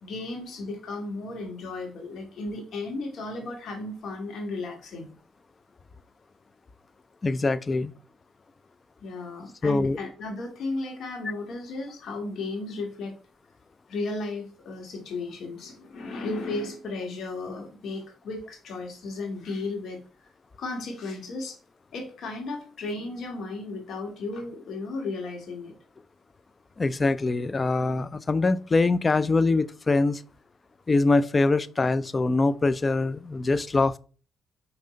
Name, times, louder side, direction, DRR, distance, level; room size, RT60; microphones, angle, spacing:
voice 1, 0.0-5.1 9.0-13.1 13.9-20.0 20.6-21.6 21.9-25.8, left 2 dB, 65° left, 2.2 m, -34 dB
voice 2, 7.2-7.9 9.6-10.0 26.8-30.2 30.9-34.0, left 3 dB, 30° left, 0.5 m, -23 dB
5.6 x 4.3 x 5.1 m
cardioid pair, 90°, 0 cm